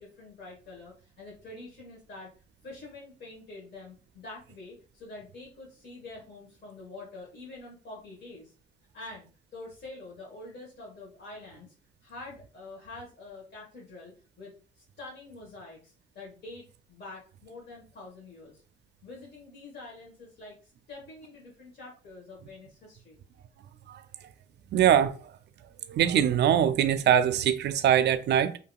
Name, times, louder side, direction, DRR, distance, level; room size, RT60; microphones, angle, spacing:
voice 1, 0.0-2.3 2.6-8.5 8.9-11.7 12.0-18.6 19.0-23.2, left 2 dB, 55° left, 1.2 m, -46 dB
voice 2, 24.7-25.1 25.9-28.6, right 9 dB, 60° right, 0.4 m, -22 dB
2.8 x 2.7 x 2.2 m
cardioid pair, 90°, 20 cm